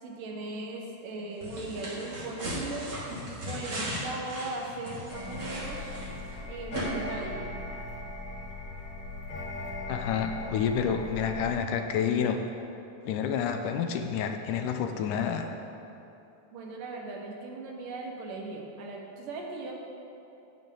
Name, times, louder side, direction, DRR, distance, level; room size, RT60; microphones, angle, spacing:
voice 1, 0.0-2.9 3.4-6.1 6.5-7.5 16.5-19.7, right 3 dB, 75° right, 0 dB, 2.8 m, -38 dB
sound 1, 1.4-6.3 6.7-6.8, right 1 dB, 35° right, 2.9 m, -37 dB
sound 2, 5.1-11.6, left 2 dB, 50° left, 2.0 m, -39 dB
voice 2, 9.9-12.4 13.1-15.5, left 7 dB, 80° left, 6 dB, 2.1 m, -29 dB
15.0 x 9.4 x 3.9 m, 2.9 s
omnidirectional pair, 3.8 m